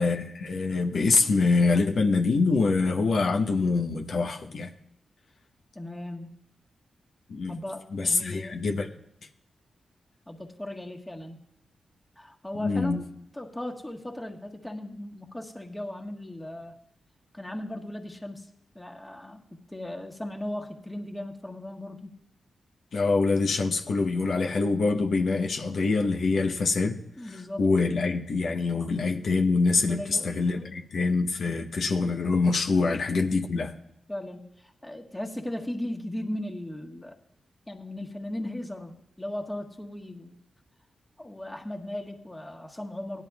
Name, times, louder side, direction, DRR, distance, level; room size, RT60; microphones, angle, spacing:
voice 1, 0.0-4.7 7.3-7.6 7.9-8.9 12.5-13.0 22.9-33.7, left 3 dB, 75° left, 2 dB, 0.9 m, -25 dB
voice 2, 5.7-6.3 7.5-8.6 10.3-11.4 12.2-13.1 13.3-16.8 17.3-18.5 18.7-22.1 27.2-27.6 28.7-28.9 29.8-30.3 30.5-30.7 32.7-32.9 34.1-34.5 34.8-37.2 37.7-40.4 41.2-43.2, left 1 dB, 15° left, 1 dB, 1.5 m, -37 dB
17.5 x 11.0 x 2.4 m, 0.78 s
cardioid pair, 55°, 0 cm